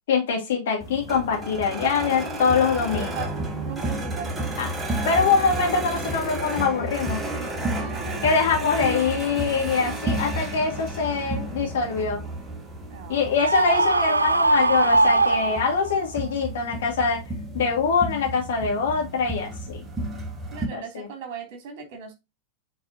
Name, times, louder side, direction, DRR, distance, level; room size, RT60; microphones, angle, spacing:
voice 1, 0.1-3.3 4.6-4.7 5.0-7.2 8.2-12.2 13.1-17.2 17.5-19.8 20.7-21.1, left 5 dB, 60° left, 0 dB, 2.4 m, -24 dB
sound 1, 0.8-20.7, right 2 dB, 15° right, 1.5 m, -32 dB
voice 2, 2.9-4.7 7.7-8.6 12.9-13.6 20.5-22.1, right 6 dB, 45° right, 4 dB, 2.9 m, -39 dB
Screaming, 13.4-16.1, right 2 dB, 80° right, 0.3 m, -21 dB
8.8 x 3.9 x 2.8 m, 0.23 s
figure-of-eight pair, 90°, 0 cm